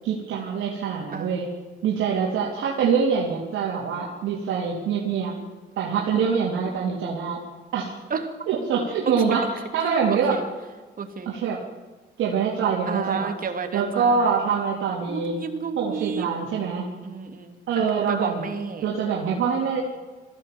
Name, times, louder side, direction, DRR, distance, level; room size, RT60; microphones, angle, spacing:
voice 1, 0.0-1.5 1.8-5.3 5.8-7.4 7.7-7.9 8.5-10.4 11.3-11.6 12.2-13.3 13.7-15.4 15.8-16.9 17.7-18.5 18.8-19.8, right 6 dB, 85° right, -3 dB, 3.5 m, -24 dB
voice 2, 10.1-10.4 11.0-11.3 12.9-14.4 15.1-16.3 17.0-18.8, right 5 dB, 45° right, 6 dB, 2.9 m, -32 dB
21.5 x 15.5 x 7.9 m, 1.3 s
cardioid pair, 90°, 20 cm